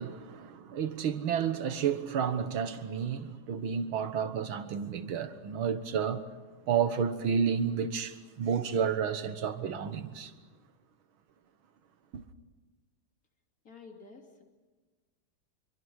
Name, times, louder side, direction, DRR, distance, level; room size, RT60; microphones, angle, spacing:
voice 1, 0.0-6.2 6.7-10.3 12.1-12.2, right 7 dB, 75° right, 2.1 m, -31 dB
voice 2, 13.6-14.4, left 4 dB, 40° left, 3.4 m, -50 dB
27.0 x 23.5 x 6.4 m
omnidirectional pair, 2.3 m